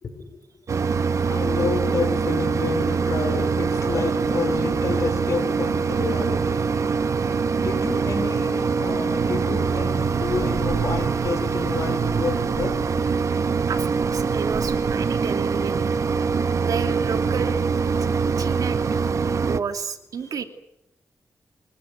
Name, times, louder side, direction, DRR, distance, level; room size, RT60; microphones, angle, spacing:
voice 1, 0.0-0.4 1.3-6.7 7.5-12.9 16.3-16.5 18.1-18.4, left 5 dB, 60° left, 8 dB, 5.3 m, -30 dB
Mechanisms, 0.7-19.6, right 5 dB, 60° right, 1.3 m, -23 dB
voice 2, 13.7-16.0 16.6-17.7 18.0-18.1 18.4-19.2 19.5-20.4, right 6 dB, 85° right, 7 dB, 2.8 m, -31 dB
25.5 x 19.5 x 9.4 m, 0.79 s
wide cardioid pair, 140°, 6 cm